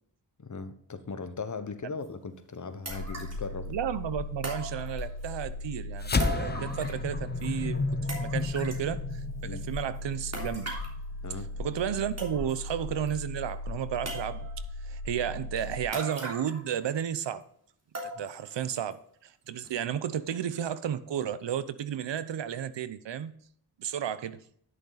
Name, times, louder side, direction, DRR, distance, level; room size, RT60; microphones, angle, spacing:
voice 1, 0.4-3.7 9.4-9.6 11.2-11.5 18.1-18.2, left 4 dB, 40° left, 10 dB, 1.2 m, -38 dB
sound 1, 2.0-2.1 2.8-3.5 4.4-5.3 6.2-7.1 7.4-7.5 8.1-8.9 10.3-11.0 11.8-11.9 12.2-12.7 13.1-13.2 14.0-14.6 15.9-16.7 17.0-17.1 17.9-18.5 18.9-19.0 19.6-19.7, right 2 dB, 35° right, 3.4 m, -39 dB
sound 2, 2.9-15.8, left 2 dB, 75° left, 2.9 m, -38 dB
voice 2, 3.7-7.8 8.2-10.7 11.6-14.5 14.8-17.4 18.0-23.3 23.8-24.4, right 9 dB, 75° right, 14 dB, 0.8 m, -33 dB
sound 3, 6.0-10.6, left 3 dB, 20° left, 0.8 m, -32 dB
11.0 x 6.7 x 4.1 m, 0.64 s
cardioid pair, 65°, 44 cm